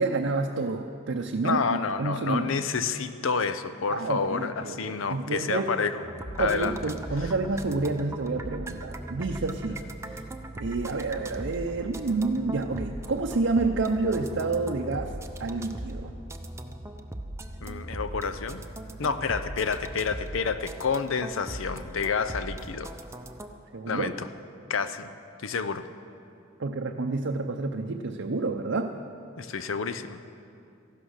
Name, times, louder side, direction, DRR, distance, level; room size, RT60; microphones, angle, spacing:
voice 1, 0.0-2.5 3.9-5.7 6.4-9.8 10.1-10.2 10.6-15.1 15.4-16.1 23.7-24.1 26.6-28.9, right 3 dB, 65° right, 2 dB, 0.6 m, -29 dB
voice 2, 1.4-6.0 6.4-6.8 7.2-7.3 17.6-18.6 19.0-23.0 23.9-24.3 24.7-25.1 25.4-25.8 29.4-30.2, left 5 dB, 75° left, 11 dB, 0.7 m, -29 dB
sound 1, 6.0-23.5, right 1 dB, 15° right, 0.6 m, -39 dB
14.5 x 11.5 x 6.5 m, 2.6 s
head